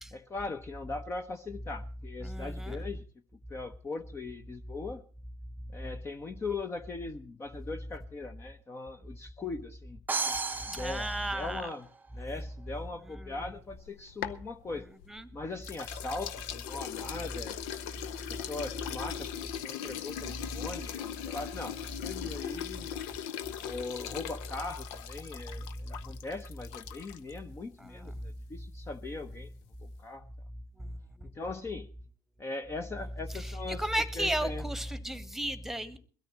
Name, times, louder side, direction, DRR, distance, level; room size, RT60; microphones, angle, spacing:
voice 1, 0.1-3.0 3.5-5.0 5.7-10.0 10.3-10.4 10.7-11.9 12.1-14.9 15.3-17.5 18.3-22.9 23.6-29.5 29.8-30.2 31.2-31.9 32.4-34.7, left 3 dB, 25° left, 0.9 m, -40 dB
voice 2, 2.2-2.8 10.7-11.6 13.2-13.4 15.1-15.3 27.8-28.1 30.8-31.0 33.3-36.0, right 1 dB, 5° right, 1.3 m, -34 dB
sound 1, 10.1-12.1, right 4 dB, 20° right, 0.7 m, -34 dB
sound 2, 13.6-15.2 15.6-27.4, left 10 dB, 65° left, 0.7 m, -40 dB
22.0 x 13.5 x 3.0 m
figure-of-eight pair, 60°, 10 cm